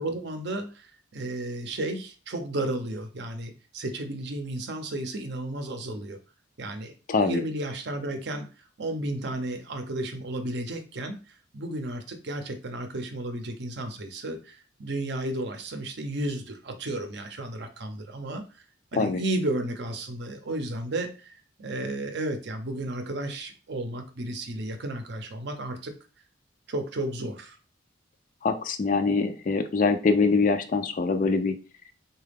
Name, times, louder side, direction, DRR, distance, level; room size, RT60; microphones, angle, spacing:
voice 1, 0.0-6.2 6.6-6.9 7.2-18.6 18.9-21.3 21.6-25.9 26.7-27.6, right 1 dB, 60° right, 7 dB, 0.6 m, -33 dB
voice 2, 7.1-7.4 18.9-19.2 28.4-31.6, left 4 dB, 40° left, 9 dB, 0.4 m, -24 dB
3.9 x 2.3 x 3.3 m, 0.35 s
head